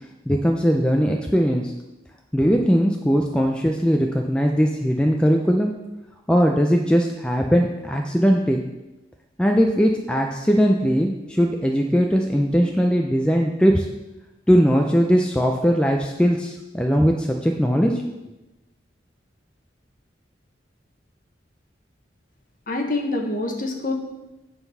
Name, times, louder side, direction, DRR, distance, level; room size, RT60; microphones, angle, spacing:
voice 1, 0.3-1.7 2.3-5.7 6.3-8.6 9.4-13.9 14.5-18.0, equal, 5° left, 1 dB, 0.4 m, -19 dB
voice 2, 22.7-23.9, left 2 dB, 45° left, 2 dB, 1.1 m, -26 dB
9.6 x 3.9 x 5.5 m, 1.0 s
head